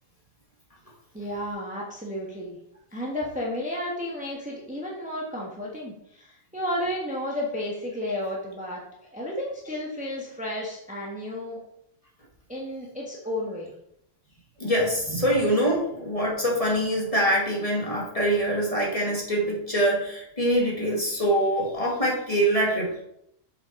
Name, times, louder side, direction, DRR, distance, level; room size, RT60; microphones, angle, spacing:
voice 1, 1.1-2.6 2.9-8.8 9.1-11.6 12.5-13.7, left 1 dB, 5° right, -3 dB, 1.3 m, -32 dB
voice 2, 14.6-22.9, right 1 dB, 25° left, -3 dB, 2.0 m, -24 dB
7.3 x 5.7 x 4.1 m, 0.77 s
omnidirectional pair, 1.4 m